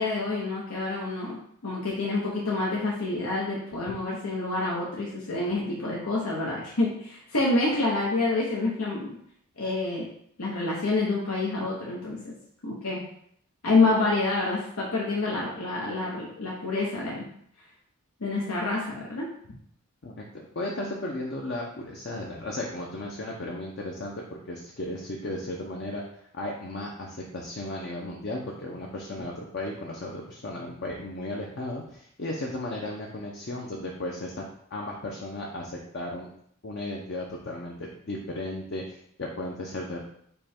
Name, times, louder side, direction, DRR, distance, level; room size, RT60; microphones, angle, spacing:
voice 1, 0.0-9.1 9.6-10.0 10.4-12.3 12.6-13.0 13.6-17.2 18.2-19.2, left 2 dB, 90° left, -4 dB, 0.9 m, -27 dB
voice 2, 20.0-34.4 34.7-36.3 36.6-40.0, left 1 dB, 50° left, -1 dB, 0.6 m, -35 dB
5.3 x 2.3 x 4.3 m, 0.67 s
head